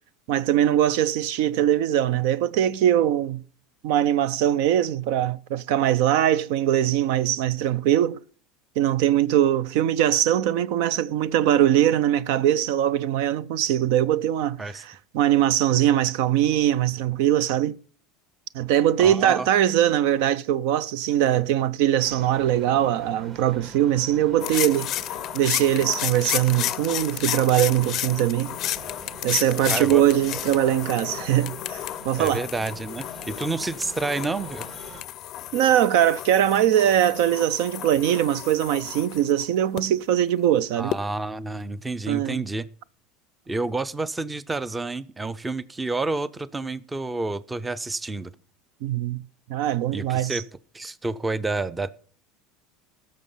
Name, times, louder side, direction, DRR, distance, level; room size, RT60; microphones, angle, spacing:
voice 1, 0.3-3.4 3.8-8.2 8.8-17.7 18.5-24.9 25.3-28.5 29.2-32.4 35.5-41.0 42.1-42.4 48.8-49.2 49.5-50.4, right 11 dB, 70° right, 0.4 m, -21 dB
voice 2, 19.0-19.5 29.7-30.0 30.3-30.4 32.2-34.7 40.8-42.7 43.5-48.3 49.9-50.5 50.7-51.9, right 3 dB, 15° right, 0.5 m, -29 dB
sound 1, 22.0-35.0, right 3 dB, 40° right, 2.2 m, -44 dB
sound 2, 24.4-39.8 40.9-41.0, left 13 dB, 45° left, 0.4 m, -32 dB
16.0 x 6.4 x 5.6 m
supercardioid pair, 115°, 0 cm